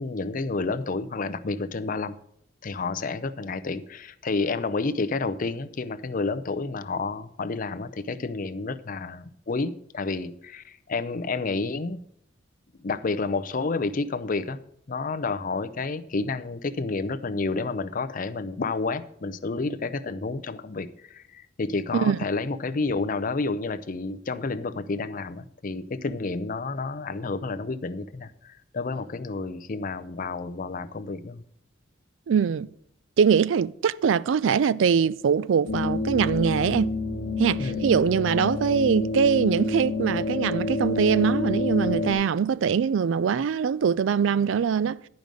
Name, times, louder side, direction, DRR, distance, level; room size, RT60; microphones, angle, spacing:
voice 1, 0.0-2.2 2.6-12.0 12.8-14.6 14.9-31.4 37.6-38.0, left 3 dB, 45° left, 0.5 m, -30 dB
voice 2, 32.3-32.7 33.2-37.0 37.4-45.0, right 7 dB, 70° right, 0.3 m, -23 dB
sound 1, 35.7-42.1, left 3 dB, 65° left, 1.2 m, -28 dB
10.5 x 5.3 x 6.3 m
head